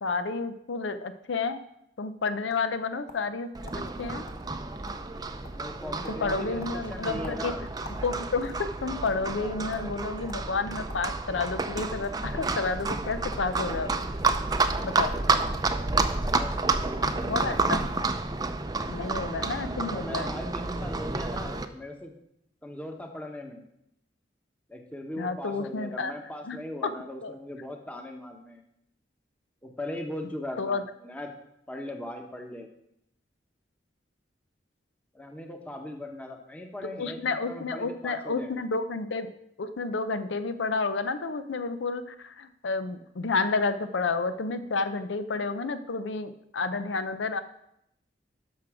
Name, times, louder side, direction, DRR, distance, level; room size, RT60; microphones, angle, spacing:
voice 1, 0.0-1.6 2.0-4.2 6.1-7.5 8.0-14.0 14.8-15.1 17.3-17.8 18.9-20.3 25.2-26.1 26.5-26.6 26.8-26.9 27.2-27.3 30.6-30.8 37.0-39.3 39.6-47.4, left 4 dB, 85° left, 11 dB, 0.6 m, -30 dB
sound 1, 1.9-3.4 3.7-3.8 4.3-4.4 4.7-5.2 5.4-5.7 6.0-6.2 6.6-8.1 8.4-9.2 9.7-9.9 10.3-10.4 10.9-11.6 12.3-12.5 13.3-13.5 13.8-14.4 15.1-15.2 15.5-15.7 16.0-16.3, left 2 dB, 55° left, 1.4 m, -48 dB
Livestock farm animals working animals, 3.5-21.7, right 3 dB, 20° right, 0.5 m, -30 dB
voice 2, 5.5-7.7 16.2-17.6 19.8-22.1 22.6-23.6 24.7-28.6 29.6-31.3 31.7-32.7 35.1-38.7, left 1 dB, 10° left, 3 dB, 1.0 m, -39 dB
12.0 x 6.1 x 4.8 m, 0.77 s
head